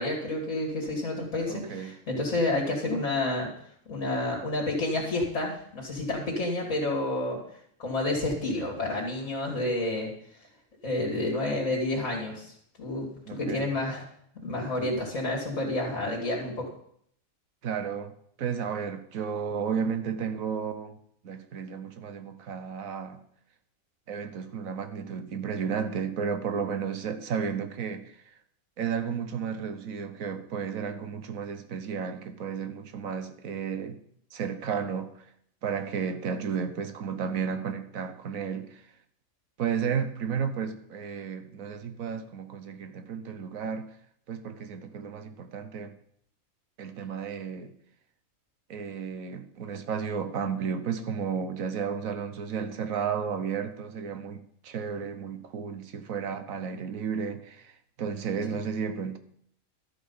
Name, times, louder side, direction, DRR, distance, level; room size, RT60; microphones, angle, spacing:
voice 1, 0.0-3.5 3.9-7.4 7.8-10.1 10.8-12.5 12.8-14.0 14.4-16.7, left 2 dB, 65° left, 2.9 m, -29 dB
voice 2, 1.5-1.9 13.3-13.7 17.6-21.0 21.2-23.2 24.1-28.0 28.8-34.0 34.3-35.1 35.6-38.8 39.6-43.9 44.3-45.9 46.8-47.7 48.7-57.7 58.0-59.2, right 6 dB, 75° right, 1.4 m, -33 dB
12.5 x 8.1 x 5.6 m
omnidirectional pair, 1.4 m